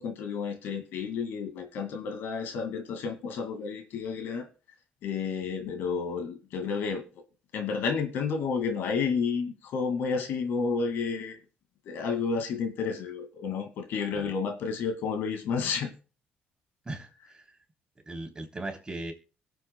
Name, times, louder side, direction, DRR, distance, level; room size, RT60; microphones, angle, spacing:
voice 1, 0.0-4.5 5.0-7.0 7.5-11.4 11.9-15.9, left 5 dB, 75° left, 6 dB, 2.1 m, -31 dB
voice 2, 16.8-17.4 18.1-19.1, right 2 dB, 20° right, 2 dB, 3.3 m, -38 dB
23.0 x 7.6 x 2.2 m, 0.35 s
supercardioid pair, 75°, 4 cm